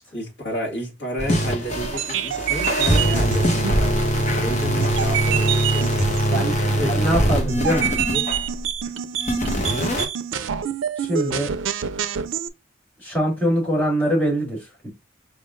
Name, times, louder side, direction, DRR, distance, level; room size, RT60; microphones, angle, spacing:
voice 1, 0.1-5.9 6.7-7.4 8.0-8.3 9.4-9.6, left 1 dB, 70° left, 1.9 m, -31 dB
sound 1, 1.2-8.6 9.2-10.0, right 1 dB, 35° left, 1.0 m, -22 dB
sound 2, 1.8-12.5, right 8 dB, 85° right, 0.4 m, -27 dB
voice 2, 6.9-8.0 11.0-11.5 13.0-14.9, right 1 dB, 10° left, 2.5 m, -23 dB
4.7 x 3.7 x 2.5 m
head